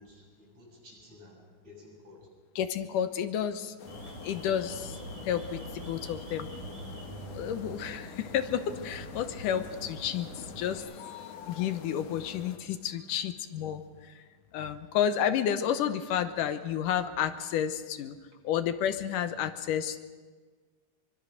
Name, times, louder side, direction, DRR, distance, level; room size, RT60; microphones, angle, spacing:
voice 1, 0.0-2.3, left 2 dB, 55° right, -3 dB, 9.0 m, -53 dB
voice 2, 2.6-3.7 4.2-5.0 5.3-6.5 7.3-14.2 14.5-18.2 18.4-20.0, left 9 dB, 85° left, 10 dB, 2.6 m, -31 dB
sound 1, 3.8-12.6, left 8 dB, 60° left, 2.1 m, -47 dB
Alarm, 3.9-10.8, right 2 dB, 80° right, 7.2 m, -44 dB
24.5 x 24.0 x 6.5 m, 1.4 s
omnidirectional pair, 3.7 m